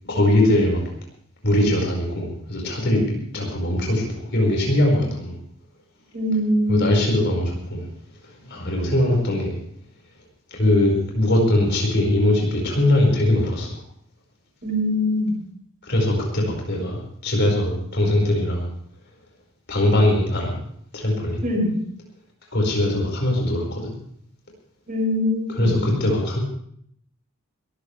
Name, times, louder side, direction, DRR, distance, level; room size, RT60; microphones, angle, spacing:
voice 1, 0.1-0.8 1.4-5.3 6.7-7.8 8.4-9.6 10.5-13.7 15.8-18.7 19.7-20.5 20.9-21.4 22.5-23.9 25.5-26.4, left 1 dB, 55° left, 0 dB, 5.3 m, -21 dB
voice 2, 6.1-6.8 14.6-15.4 21.4-21.7 24.9-25.6, left 1 dB, 40° right, -1 dB, 6.9 m, -22 dB
22.0 x 14.5 x 3.4 m, 0.66 s
head